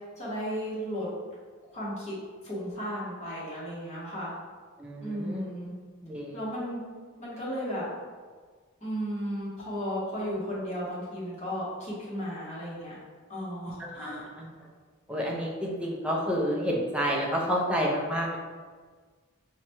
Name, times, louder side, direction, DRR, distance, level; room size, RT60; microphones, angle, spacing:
voice 1, 0.2-1.0 1.7-2.1 2.4-4.3 5.0-5.7 6.3-6.8 7.2-7.8 8.8-12.9 13.3-14.3, equal, 30° left, -8 dB, 1.1 m, -34 dB
voice 2, 4.8-5.5 6.0-6.3 14.0-14.1 14.4-14.5 15.1-18.4, equal, 5° right, -3 dB, 0.4 m, -29 dB
3.8 x 2.2 x 2.9 m, 1.5 s
head